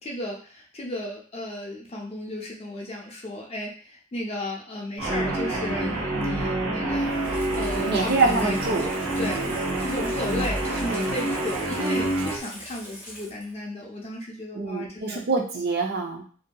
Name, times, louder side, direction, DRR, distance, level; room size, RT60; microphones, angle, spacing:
voice 1, 0.0-8.9 9.2-9.5 9.8-15.2, left 1 dB, 30° left, -1 dB, 0.5 m, -34 dB
Guitar, 5.0-12.4, right 1 dB, 75° right, 1.0 m, -27 dB
Water tap faucet / Sink (filling or washing), 6.9-13.6 14.0-14.1, equal, 10° right, 0.9 m, -43 dB
voice 2, 7.8-8.9 14.5-16.2, right 3 dB, 50° right, 1 dB, 0.5 m, -25 dB
2.7 x 2.6 x 2.2 m, 0.43 s
head